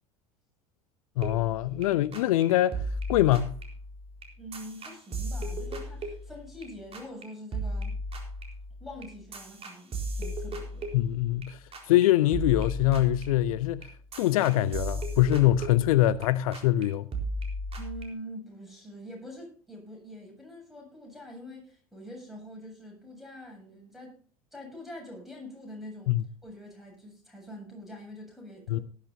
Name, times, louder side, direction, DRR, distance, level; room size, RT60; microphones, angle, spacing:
voice 1, 1.2-2.8 3.1-3.6 10.9-11.6 11.9-13.9 14.2-17.1 26.1-26.2 28.7-28.8, left 14 dB, 65° left, 0.6 m, -23 dB
sound 1, 1.2-1.9 2.1-2.4 2.7-6.7 6.9-7.2 7.5-11.5 11.7-12.0 12.3-16.3 16.5-16.8 17.1-18.0, right 1 dB, 30° right, 4.2 m, -36 dB
voice 2, 4.4-8.0 8.8-10.9 17.8-24.2 24.5-28.8, equal, ahead, 8.0 m, -44 dB
18.5 x 11.5 x 2.7 m
figure-of-eight pair, 75°, 19 cm